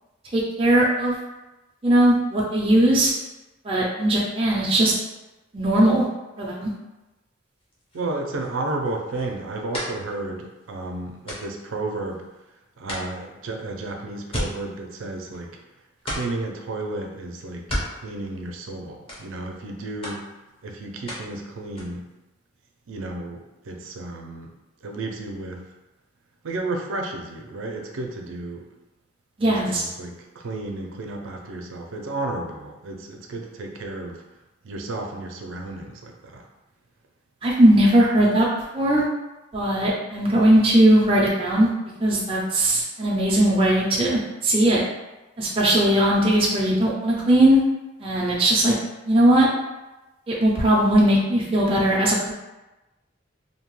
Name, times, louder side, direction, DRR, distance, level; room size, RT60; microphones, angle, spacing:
voice 1, 0.3-1.1 1.8-3.1 3.6-4.9 5.5-6.0 6.4-6.7 29.4-29.8 37.4-38.5 38.7-39.1 39.5-41.7 42.0-44.8 45.4-47.6 48.0-48.7 49.1-49.5 50.3-52.3, right 1 dB, 30° right, -5 dB, 0.4 m, -19 dB
sound 1, 7.6-12.4 12.8-15.7 16.0-16.6 17.5-18.8 19.1-19.7 20.0-21.4 21.6-22.1, equal, 30° left, 0.6 m, -36 dB
voice 2, 7.9-12.3 12.8-15.6 16.0-20.3 20.6-22.1 22.9-24.5 24.8-25.7 26.4-28.7 29.4-34.2 34.6-36.5, right 2 dB, 85° right, 2 dB, 0.5 m, -32 dB
2.7 x 2.2 x 3.0 m, 1.0 s
head